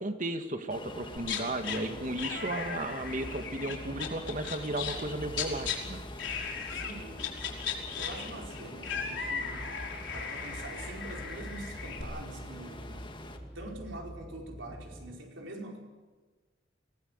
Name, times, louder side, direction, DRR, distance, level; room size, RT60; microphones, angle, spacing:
voice 1, 0.0-6.0, right 1 dB, 40° right, 7 dB, 2.1 m, -34 dB
Ocean, 0.7-13.4, left 1 dB, 25° left, 2.3 m, -46 dB
sound 1, 0.9-15.2, equal, 5° left, 1.3 m, -47 dB
sound 2, 1.2-1.8 2.2-5.8 6.2-6.9 7.2-12.0, left 7 dB, 65° left, 4.7 m, -37 dB
voice 2, 6.7-9.7 10.1-13.1 13.5-15.8, right 1 dB, 65° right, 2 dB, 4.9 m, -45 dB
24.5 x 18.0 x 8.2 m, 1.3 s
head